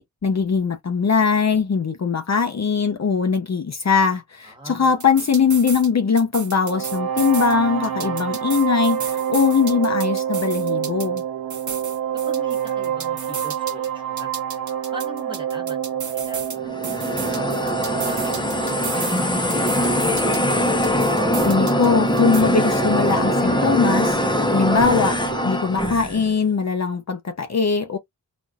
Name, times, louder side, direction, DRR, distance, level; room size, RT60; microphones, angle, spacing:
voice 1, 0.0-11.2 21.4-24.2 24.5-25.2 25.4-28.0, left 5 dB, 45° left, 0.7 m, -21 dB
voice 2, 4.4-5.0 12.3-14.3 14.9-20.3, right 1 dB, 15° right, 1.4 m, -40 dB
sound 1, 4.8-5.9 6.2-7.5 7.8-11.2 11.5-13.9 14.2-16.6 16.8-19.2 19.5-21.9 22.2-22.4, right 5 dB, 55° right, 1.0 m, -34 dB
sound 2, 6.6-25.4, right 9 dB, 75° right, 1.0 m, -28 dB
sound 3, 16.6-26.3, left 1 dB, 10° left, 0.8 m, -22 dB
4.1 x 2.5 x 2.3 m
wide cardioid pair, 85°, 36 cm